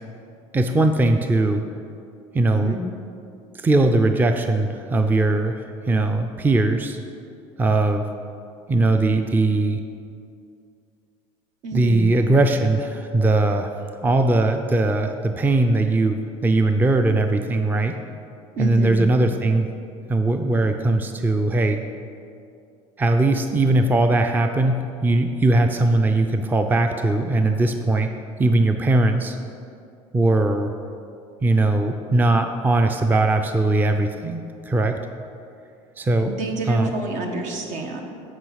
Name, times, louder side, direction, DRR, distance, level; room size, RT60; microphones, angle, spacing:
voice 1, 0.5-1.6 2.3-2.8 3.5-7.0 7.6-8.0 8.7-9.8 11.7-13.7 14.0-18.0 18.6-19.7 20.1-21.8 23.0-28.1 28.4-29.4 30.1-30.7 31.4-35.0 36.0-36.3 36.7-36.9, right 2 dB, 15° right, 6 dB, 0.5 m, -20 dB
voice 2, 2.5-2.9 11.6-12.0 18.6-19.0 36.2-38.0, right 2 dB, 70° right, 3 dB, 1.3 m, -28 dB
9.4 x 4.9 x 6.4 m, 2.5 s
cardioid pair, 115°, 14 cm